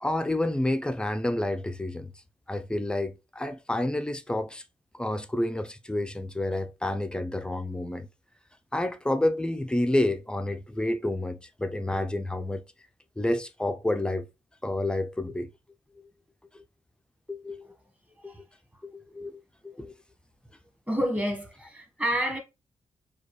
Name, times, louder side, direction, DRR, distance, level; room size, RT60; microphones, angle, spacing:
voice 1, 0.0-2.1 2.5-4.6 4.9-8.1 8.7-12.6 13.2-14.3 14.6-15.5 16.5-16.6 17.3-17.7 18.2-18.3 18.8-19.9, left 1 dB, 5° left, 0.5 m, -29 dB
voice 2, 20.9-22.4, equal, 15° right, 1.3 m, -29 dB
4.4 x 2.4 x 3.1 m
cardioid pair, 70°, 12 cm